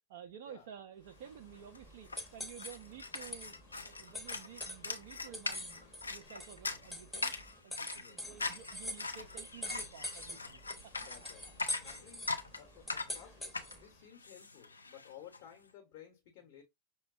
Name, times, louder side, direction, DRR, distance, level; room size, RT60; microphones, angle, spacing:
voice 1, 0.1-5.8 6.1-7.3 7.6-11.3 12.0-12.1, right 9 dB, 55° right, 0.4 m, -52 dB
sound 1, 1.1-13.9, left 1 dB, 5° left, 0.8 m, -46 dB
sound 2, 1.2-1.3 1.5-15.4, left 3 dB, 80° left, 0.4 m, -42 dB
voice 2, 7.9-8.3 11.0-11.5 11.8-16.6, left 10 dB, 50° left, 1.0 m, -56 dB
5.8 x 2.1 x 2.4 m
figure-of-eight pair, 90°, 0 cm